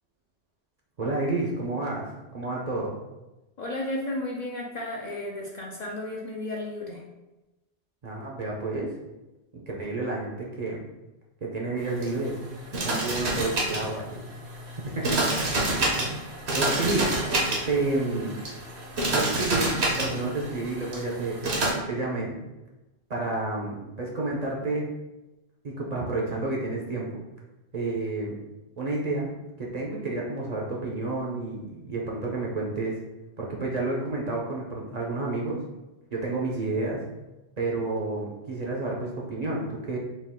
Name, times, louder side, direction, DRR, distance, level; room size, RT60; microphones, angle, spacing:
voice 1, 1.0-2.1 2.3-3.0 8.0-8.9 9.7-10.9 11.4-12.4 12.8-14.3 14.8-15.2 16.5-17.1 17.7-18.4 19.1-22.4 23.1-24.9 25.6-27.2 27.7-28.4 28.8-29.3 29.6-33.0 33.4-35.6 36.1-37.0 37.6-40.0, right 2 dB, 45° right, -3 dB, 0.6 m, -30 dB
voice 2, 3.6-7.0 17.2-17.4, left 1 dB, 50° left, -2 dB, 0.5 m, -33 dB
sound 1, 11.8-21.7, right 2 dB, 70° right, 1.1 m, -29 dB
4.3 x 2.4 x 3.6 m, 1.0 s
omnidirectional pair, 1.1 m